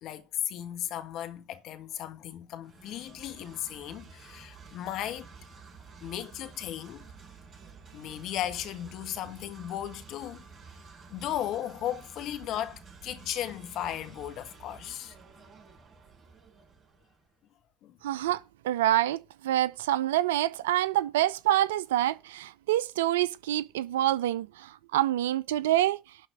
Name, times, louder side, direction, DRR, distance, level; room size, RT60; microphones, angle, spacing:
voice 1, 0.0-5.3 6.0-7.1 7.9-10.4 11.1-15.1 17.8-18.0, left 11 dB, 55° left, 1.6 m, -36 dB
sound 1, 2.6-17.3, right 5 dB, 45° right, 5.6 m, -51 dB
voice 2, 18.0-18.4 18.6-26.0, right 13 dB, 70° right, 0.4 m, -26 dB
11.5 x 4.2 x 8.0 m
figure-of-eight pair, 55°, 0 cm